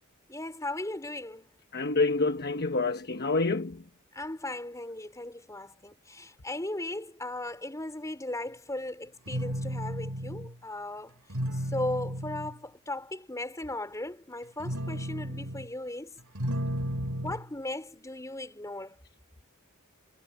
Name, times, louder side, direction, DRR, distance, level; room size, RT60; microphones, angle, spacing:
voice 1, 0.3-1.5 4.1-11.2 11.5-16.2 17.2-19.0, left 1 dB, 15° left, 4.0 m, -37 dB
voice 2, 1.7-3.8, left 3 dB, 45° left, 1.1 m, -27 dB
sound 1, 9.3-10.6 11.3-12.6 14.4-15.7 16.2-17.5, equal, 85° right, 3.9 m, -33 dB
head